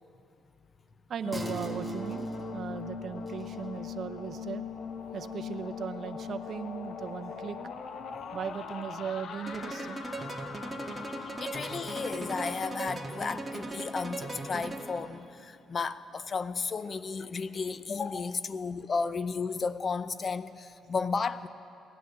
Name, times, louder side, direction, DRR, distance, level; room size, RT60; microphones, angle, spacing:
voice 1, 1.1-4.7 5.1-7.6 8.3-10.0, right 7 dB, 55° right, 9 dB, 0.6 m, -38 dB
sound 1, 1.2-12.7, left 7 dB, 65° left, 0.9 m, -41 dB
sound 2, 1.3-8.3 8.7-8.8, right 3 dB, 5° left, 1.8 m, -44 dB
sound 3, 9.5-15.1, right 2 dB, 20° right, 1.8 m, -38 dB
voice 2, 11.4-21.5, left 5 dB, 40° left, 14 dB, 0.6 m, -33 dB
16.0 x 11.0 x 8.3 m, 2.7 s
cardioid pair, 90°, 0 cm